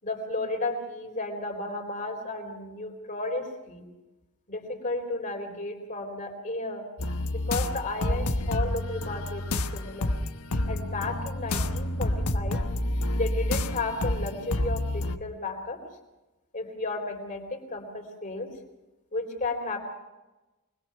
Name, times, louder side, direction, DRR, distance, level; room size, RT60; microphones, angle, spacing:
voice 1, 0.0-3.8 4.5-6.9 7.3-10.1 10.7-12.6 13.2-15.8 16.5-18.5 19.1-19.8, left 2 dB, 35° left, 3 dB, 4.0 m, -33 dB
sound 1, 7.0-15.2, left 1 dB, 85° left, 1.2 m, -29 dB
25.0 x 21.0 x 5.8 m, 1.1 s
head